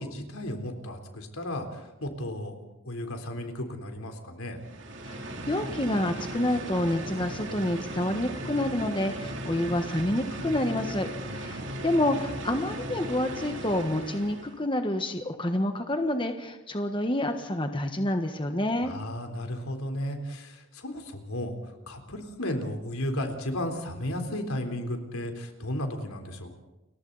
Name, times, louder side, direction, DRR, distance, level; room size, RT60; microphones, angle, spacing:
voice 1, 0.0-2.6 2.9-4.6 11.3-11.7 18.8-21.6 21.9-26.6, left 1 dB, 85° left, 4 dB, 3.9 m, -34 dB
sound 1, 4.6-14.6, right 1 dB, 55° right, 3.0 m, -37 dB
voice 2, 5.0-11.1 11.3-18.9, left 1 dB, 25° left, 6 dB, 1.4 m, -28 dB
30.0 x 23.0 x 4.1 m, 0.99 s
head